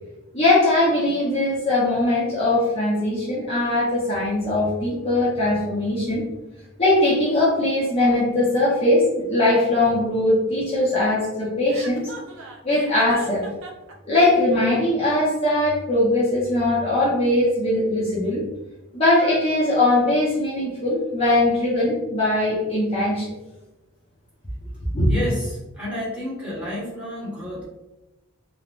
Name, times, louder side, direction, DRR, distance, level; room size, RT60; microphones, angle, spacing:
voice 1, 0.3-6.3 6.8-12.1 12.6-13.4 14.1-18.4 18.9-23.3 24.9-25.1, left 1 dB, 25° left, -8 dB, 0.6 m, -20 dB
Chuckle chortle, 11.7-13.9, right 3 dB, 65° right, 0.4 m, -38 dB
voice 2, 25.1-27.6, left 1 dB, 5° right, -9 dB, 1.0 m, -30 dB
3.4 x 2.1 x 2.4 m, 1.0 s
head